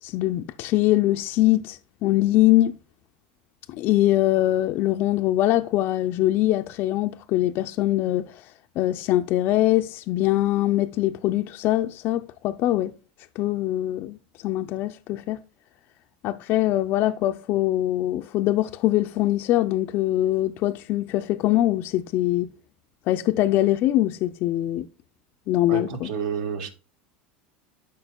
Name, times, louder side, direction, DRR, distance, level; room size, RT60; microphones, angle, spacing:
voice 1, 0.0-2.8 3.7-12.9 13.4-15.4 16.2-22.5 23.1-24.9 25.5-26.1, left 15 dB, 50° left, 0.4 m, -23 dB
voice 2, 25.7-26.7, right 7 dB, 70° right, 1.7 m, -30 dB
12.0 x 5.1 x 2.2 m
supercardioid pair, 130°, 5 cm